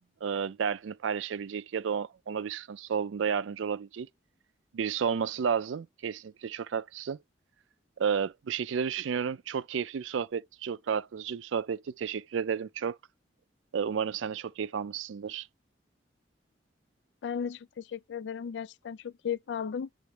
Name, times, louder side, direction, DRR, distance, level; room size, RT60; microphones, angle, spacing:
voice 1, 0.2-4.1 4.7-7.2 8.0-13.0 13.7-15.5, right 7 dB, 80° right, 0.4 m, -32 dB
voice 2, 17.2-19.9, left 7 dB, 65° left, 0.3 m, -35 dB
8.1 x 3.7 x 3.2 m
head